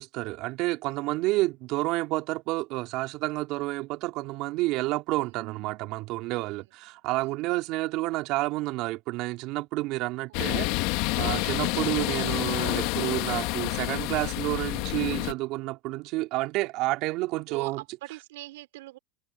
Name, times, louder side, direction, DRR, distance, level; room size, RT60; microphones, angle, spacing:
voice 1, 0.0-17.8, right 20 dB, 55° right, 3.5 m, -30 dB
voice 2, 5.1-5.5 6.4-6.7 7.1-7.7 10.3-10.7 11.5-11.9 17.5-19.0, right 18 dB, 75° right, 3.9 m, -45 dB
sound 1, 10.3-15.3, left 22 dB, 60° left, 1.7 m, -28 dB
supercardioid pair, 115°, 0 cm